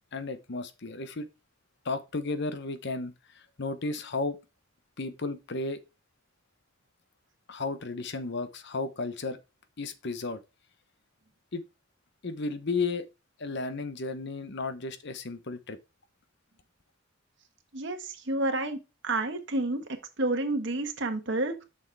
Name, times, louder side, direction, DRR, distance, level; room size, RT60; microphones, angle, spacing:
voice 1, 0.1-1.3 1.8-4.4 5.0-5.8 7.5-9.4 9.8-10.4 11.5-11.6 12.2-13.1 13.4-15.8, left 3 dB, 55° left, 0.9 m, -33 dB
voice 2, 18.3-18.8 19.0-19.8 20.2-21.6, right 2 dB, 60° right, 1.5 m, -29 dB
7.6 x 6.2 x 3.4 m
head